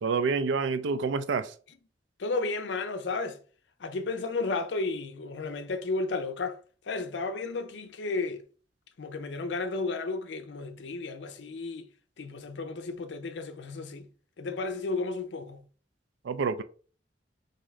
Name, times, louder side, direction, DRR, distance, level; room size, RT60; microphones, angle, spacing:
voice 1, 0.0-1.5 16.2-16.6, right 4 dB, 85° right, 0.4 m, -28 dB
voice 2, 2.2-3.4 3.8-6.6 6.8-8.4 9.0-11.9 12.2-14.1 14.4-15.6, left 3 dB, 75° left, 0.5 m, -33 dB
3.6 x 2.7 x 3.2 m
head